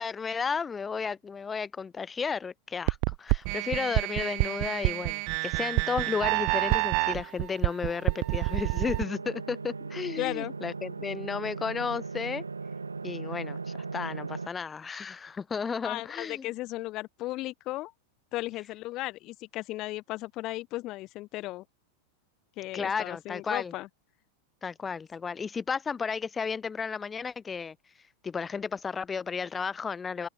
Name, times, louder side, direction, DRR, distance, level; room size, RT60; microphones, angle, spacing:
voice 1, 0.0-12.4 13.0-16.5 22.7-23.7 24.6-27.7 28.2-30.3, left 5 dB, 15° left, 3.3 m, -33 dB
sound 1, 2.9-9.0, right 40 dB or more, 45° right, 1.2 m, -28 dB
sound 2, 7.8-14.5, right 4 dB, 75° right, 2.8 m, -38 dB
voice 2, 10.2-10.5 15.8-17.9 18.3-21.6 22.6-23.9, left 18 dB, 40° left, 4.3 m, -35 dB
open air
figure-of-eight pair, 90°, 0 cm